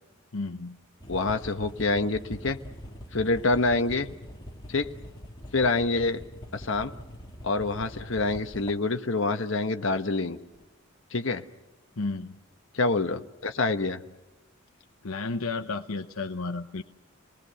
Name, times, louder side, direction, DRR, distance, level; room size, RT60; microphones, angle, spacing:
voice 1, 0.3-0.8 12.0-12.4 15.0-16.8, left 3 dB, 80° left, 7 dB, 0.9 m, -32 dB
sound 1, 1.0-8.9 10.1-10.2 10.5-10.6, equal, 20° left, 2.3 m, -43 dB
voice 2, 1.1-2.6 3.1-4.1 4.7-4.9 5.5-6.2 6.5-6.9 7.4-10.4 11.1-11.4 12.7-14.0, left 3 dB, 60° left, 7 dB, 1.2 m, -26 dB
29.5 x 20.0 x 6.9 m, 1.1 s
head